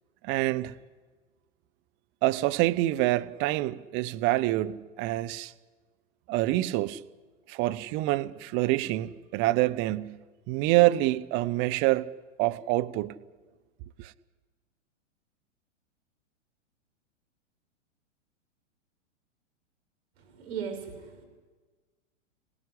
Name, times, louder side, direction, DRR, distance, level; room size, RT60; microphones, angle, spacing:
voice 1, 0.2-0.7 2.2-5.5 6.3-7.0 7.5-10.2 10.5-12.1 12.4-13.2 14.0-14.1, right 17 dB, 30° right, 0.9 m, -26 dB
voice 2, 20.2-21.2, right 7 dB, 55° right, 6.9 m, -37 dB
25.5 x 19.0 x 10.0 m
figure-of-eight pair, 110°, 38 cm